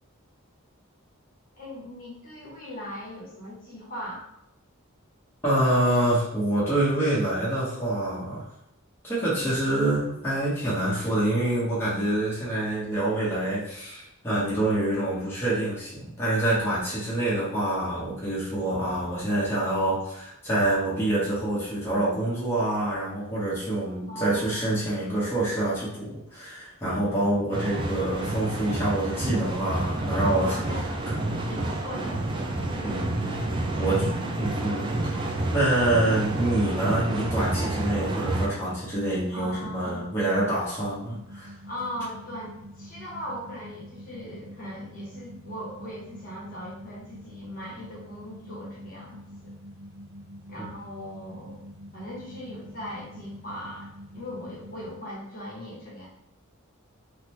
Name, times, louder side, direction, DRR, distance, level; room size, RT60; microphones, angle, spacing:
voice 1, 1.6-4.3 24.1-24.6 30.2-30.9 31.5-32.2 32.6-33.0 33.7-34.0 39.3-40.1 41.6-49.5 50.5-51.6 51.9-53.9 54.1-56.1, equal, 45° left, -5 dB, 1.0 m, -39 dB
voice 2, 5.4-8.5 9.0-30.6 32.8-33.2 33.8-34.1 34.4-35.2 35.5-41.5 50.6-50.7, right 1 dB, 10° left, -9 dB, 1.0 m, -26 dB
sound 1, 27.5-38.5, right 2 dB, 25° right, 0.4 m, -29 dB
sound 2, 41.0-55.0, equal, 70° right, 1.0 m, -45 dB
3.7 x 2.1 x 3.0 m, 0.79 s
head